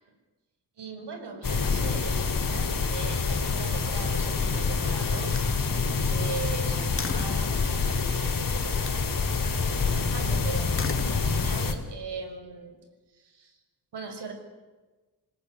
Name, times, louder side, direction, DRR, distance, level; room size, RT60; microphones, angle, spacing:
voice 1, 0.8-5.4 5.8-12.7 13.2-13.6 13.9-14.3, right 4 dB, 80° right, 6 dB, 6.3 m, -40 dB
sound 1, 1.4-11.7, left 4 dB, 55° left, 3.5 m, -27 dB
Slam, 4.3-4.6 5.1-7.6 8.6-9.1 10.6-11.7, left 4 dB, 30° left, 1.8 m, -39 dB
27.0 x 19.0 x 9.7 m, 1.3 s
wide cardioid pair, 95°, 40 cm